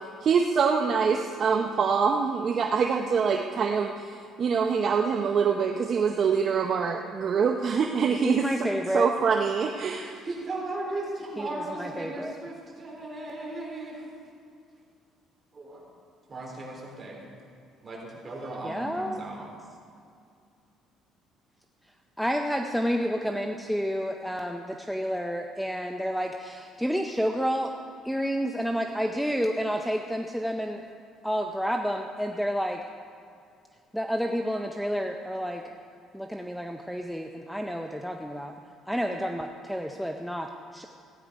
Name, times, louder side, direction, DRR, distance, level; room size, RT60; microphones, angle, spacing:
voice 1, 0.2-8.7 8.9-10.2, right 6 dB, 45° right, 4 dB, 0.6 m, -25 dB
voice 2, 8.2-9.1 11.4-12.3 18.6-19.2 22.2-27.7 28.0-30.8 31.2-32.8 33.9-35.6 36.1-38.5 38.9-40.9, equal, ahead, 4 dB, 0.6 m, -30 dB
voice 3, 10.2-14.1 15.5-15.8 16.3-17.2 17.8-19.5, right 2 dB, 25° right, -2 dB, 3.6 m, -36 dB
16.0 x 9.6 x 5.1 m, 2.3 s
cardioid pair, 130°, 0 cm